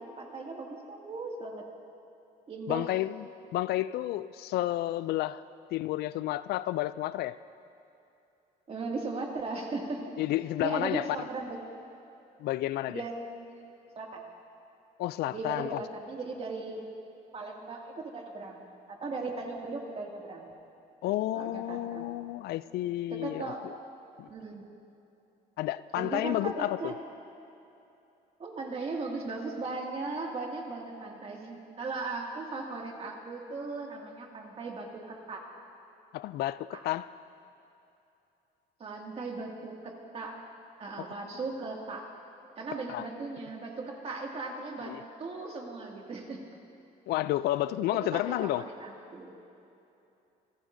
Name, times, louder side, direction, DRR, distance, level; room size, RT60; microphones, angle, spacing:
voice 1, 0.0-1.7 2.5-3.0 8.7-10.0 10.6-11.6 12.9-14.2 15.3-16.8 17.3-20.5 21.3-22.1 23.1-23.6 24.3-24.7 25.9-27.0 28.4-35.4 36.7-36.8 38.8-40.4 40.8-42.1 42.6-46.4 48.0-49.3, right 3 dB, 35° right, 0 dB, 2.3 m, -38 dB
voice 2, 2.7-3.3 3.5-5.4 5.7-7.4 10.2-11.1 12.4-13.0 15.0-15.8 21.0-23.5 24.2-24.3 25.6-26.9 36.1-37.1 41.0-41.1 42.9-43.1 44.8-45.0 47.1-48.7, left 15 dB, 75° left, 16 dB, 0.4 m, -31 dB
28.5 x 15.0 x 2.7 m, 2.8 s
cardioid pair, 110°, 17 cm